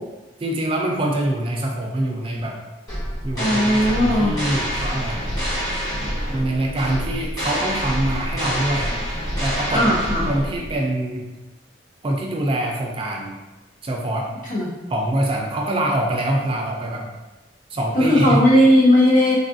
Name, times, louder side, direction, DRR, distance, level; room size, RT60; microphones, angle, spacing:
voice 1, 0.4-2.6 3.2-5.2 6.3-8.9 9.4-10.0 10.3-11.3 12.0-13.4 13.8-14.3 14.9-17.1 17.7-18.5, right 1 dB, 30° right, 0 dB, 0.4 m, -24 dB
sound 1, 2.9-10.8, equal, 20° left, 1.3 m, -26 dB
voice 2, 3.4-4.3 9.7-10.3 14.5-14.7 17.9-19.4, equal, 45° left, -4 dB, 0.8 m, -16 dB
3.5 x 2.3 x 2.5 m, 1.1 s
head